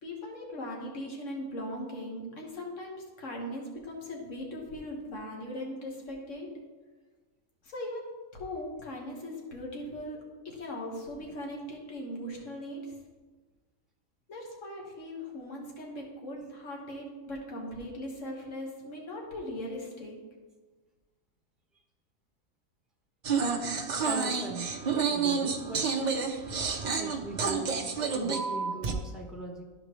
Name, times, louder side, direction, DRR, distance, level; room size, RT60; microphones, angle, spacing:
voice 1, 0.0-6.5 7.6-10.2 10.5-12.9 14.3-20.2, left 1 dB, 55° left, -1 dB, 1.8 m, -39 dB
sound 1, 23.2-28.9, right 5 dB, 45° right, 0.6 m, -29 dB
voice 2, 24.0-24.7 25.1-25.8 27.0-29.6, right 1 dB, ahead, -1 dB, 0.9 m, -40 dB
13.0 x 5.0 x 3.1 m, 1.3 s
omnidirectional pair, 1.6 m